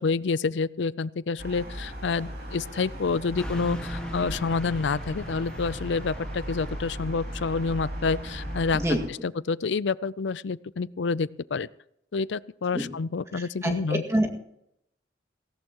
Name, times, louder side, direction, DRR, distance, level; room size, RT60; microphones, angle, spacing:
voice 1, 0.0-8.8 9.2-11.7 12.1-14.0, left 4 dB, 70° left, 19 dB, 0.5 m, -28 dB
sound 1, 1.4-9.1, equal, 55° right, 4.6 m, -38 dB
Car passing by / Truck, 3.3-8.9, equal, 5° left, 1.7 m, -39 dB
voice 2, 13.3-14.4, equal, 15° right, 1 dB, 2.0 m, -27 dB
18.0 x 17.5 x 3.0 m, 0.77 s
head